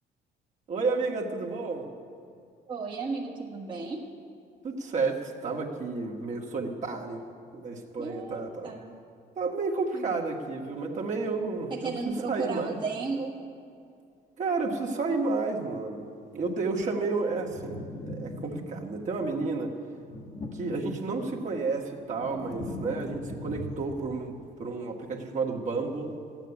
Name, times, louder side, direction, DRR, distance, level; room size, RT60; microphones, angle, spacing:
voice 1, 0.7-1.9 4.6-7.2 7.5-8.7 9.4-12.8 14.4-16.1 16.3-17.8 18.1-19.7 20.5-26.2, right 3 dB, 45° right, 1 dB, 1.8 m, -31 dB
voice 2, 2.7-4.0 8.0-9.0 9.9-10.0 11.7-13.4, right 4 dB, 30° right, -2 dB, 1.5 m, -34 dB
sound 1, 17.4-19.0 20.0-21.5 21.9-24.2, left 1 dB, 45° left, 1.4 m, -39 dB
13.5 x 9.0 x 9.9 m, 2.4 s
cardioid pair, 110°, 17 cm